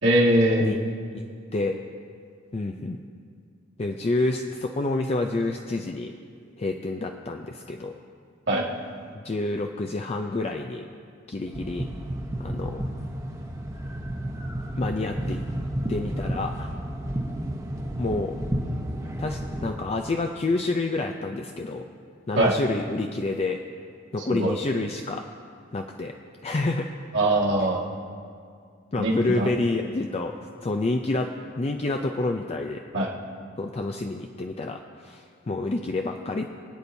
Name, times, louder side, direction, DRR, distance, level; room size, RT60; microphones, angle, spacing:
voice 1, 0.0-0.8 8.5-8.7 22.4-22.6 24.3-24.5 27.1-27.8 29.0-29.5 32.9-33.1, right 1 dB, 65° right, -4 dB, 1.9 m, -21 dB
voice 2, 2.5-3.0 3.8-6.1 6.6-7.9 9.1-10.9 11.3-11.9 12.4-12.8 14.8-15.4 15.9-16.7 18.0-18.4 19.2-21.9 22.3-23.6 24.1-25.3 25.7-26.1 26.4-26.9 28.9-30.3 30.6-32.9 33.6-36.5, left 2 dB, 30° left, 4 dB, 0.4 m, -28 dB
sound 1, 11.5-19.7, right 1 dB, 15° right, 1.0 m, -31 dB
24.5 x 8.6 x 2.7 m, 2.2 s
head